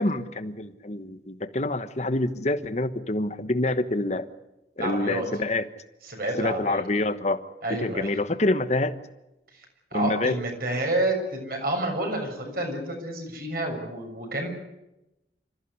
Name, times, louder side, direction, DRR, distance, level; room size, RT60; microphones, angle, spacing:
voice 1, 0.0-4.3 4.8-5.7 6.4-7.4 7.7-9.0 9.9-10.3, left 2 dB, 40° left, 11 dB, 1.2 m, -26 dB
voice 2, 4.8-5.2 6.0-6.8 7.6-8.2 9.5-9.7 9.9-14.5, right 1 dB, 55° right, 3 dB, 6.7 m, -29 dB
27.0 x 14.5 x 9.9 m, 0.94 s
head